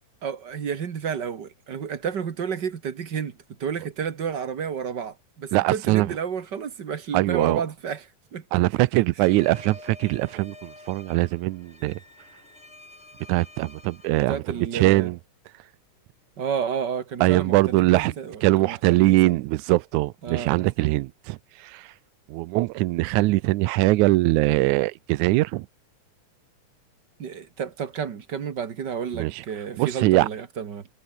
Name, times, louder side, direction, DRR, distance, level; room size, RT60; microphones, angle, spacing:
voice 1, 0.2-8.4 14.3-15.1 16.4-19.4 20.2-20.9 27.2-30.9, right 7 dB, 45° right, 1.7 m, -31 dB
voice 2, 5.5-6.1 7.1-7.6 8.5-12.0 13.3-14.4 14.7-15.2 17.2-18.1 18.4-21.9 22.3-25.7 29.1-29.4 29.8-30.3, right 19 dB, 80° right, 1.9 m, -22 dB
sound 1, 9.2-14.2, left 2 dB, 15° left, 4.5 m, -47 dB
omnidirectional pair, 3.8 m